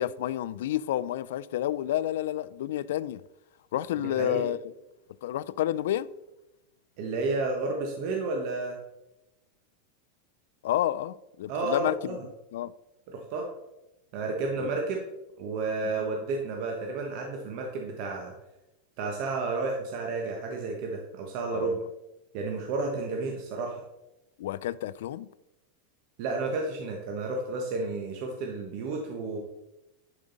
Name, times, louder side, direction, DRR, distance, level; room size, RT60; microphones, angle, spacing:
voice 1, 0.0-3.2 3.7-4.7 5.2-6.1 10.6-12.2 12.5-12.7 14.6-14.7 15.8-16.1 21.5-21.7 24.4-25.3, left 12 dB, 75° left, 0.4 m, -30 dB
voice 2, 4.0-4.5 7.0-8.8 11.5-12.2 13.1-13.5 14.1-15.0 15.4-18.3 19.0-21.8 22.3-23.8 26.2-29.4, right 3 dB, 50° right, 1.2 m, -31 dB
11.0 x 5.1 x 4.0 m
supercardioid pair, 155°, 0 cm